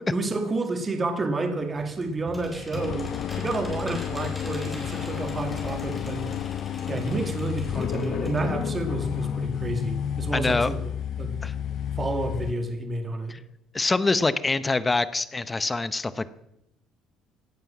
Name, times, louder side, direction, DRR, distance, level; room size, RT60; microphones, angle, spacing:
voice 1, 0.1-6.4 6.9-10.8 11.2-11.4 12.0-13.4, right 2 dB, 20° right, 6 dB, 2.0 m, -30 dB
sound 1, 1.6-8.5 8.8-8.9 9.1-9.2, equal, ahead, 4.4 m, -43 dB
sound 2, 2.7-12.5, left 9 dB, 45° left, 0.5 m, -31 dB
voice 2, 10.3-10.7 11.4-11.5 13.3-13.4 13.7-16.3, left 3 dB, 15° left, 14 dB, 0.8 m, -25 dB
17.5 x 11.0 x 7.3 m, 0.83 s
cardioid pair, 145°, 0 cm